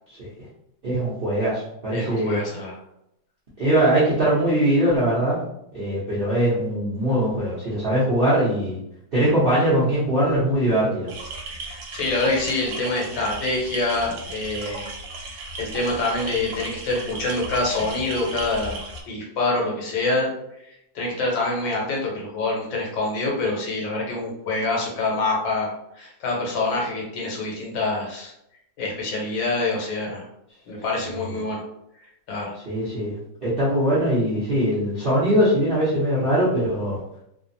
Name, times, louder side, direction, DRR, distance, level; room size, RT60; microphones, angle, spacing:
voice 1, 0.8-2.4 3.6-5.4 5.7-8.8 9.1-11.1 31.2-31.4 32.7-33.1 33.4-37.0, right 1 dB, 55° right, -10 dB, 0.6 m, -21 dB
voice 2, 1.9-2.7 11.6-14.9 15.2-20.3 20.7-28.3 28.8-30.2 30.7-31.6 32.3-32.5, left 2 dB, 80° left, -2 dB, 1.6 m, -26 dB
sound 1, 11.1-19.0, right 3 dB, 75° right, 1.2 m, -35 dB
3.2 x 2.0 x 2.6 m, 0.80 s
omnidirectional pair, 2.1 m